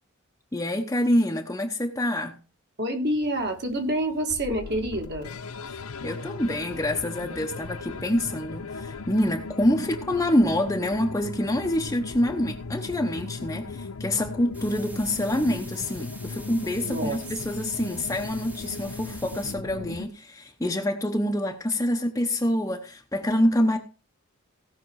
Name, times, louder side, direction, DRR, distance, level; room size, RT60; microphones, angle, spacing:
voice 1, 0.5-2.4 5.7-23.8, left 1 dB, 15° left, 0.9 m, -26 dB
voice 2, 2.8-5.3 16.8-17.2, right 1 dB, 50° right, 2.3 m, -27 dB
sound 1, 3.0-20.1, left 4 dB, 80° left, 0.7 m, -38 dB
sound 2, 14.5-19.5, right 1 dB, 5° right, 1.1 m, -46 dB
17.5 x 5.9 x 4.8 m
head